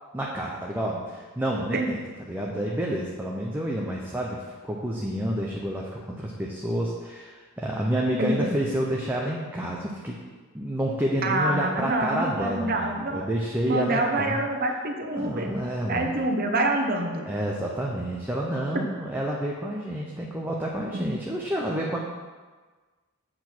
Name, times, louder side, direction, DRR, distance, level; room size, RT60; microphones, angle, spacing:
voice 1, 0.1-10.2 10.5-14.4 15.1-16.1 17.3-22.0, right 1 dB, 10° right, -3 dB, 0.7 m, -29 dB
voice 2, 8.2-8.5 11.2-13.2 13.7-15.5 15.9-17.3, right 2 dB, 45° right, 3 dB, 0.9 m, -26 dB
7.7 x 4.6 x 6.1 m, 1.4 s
head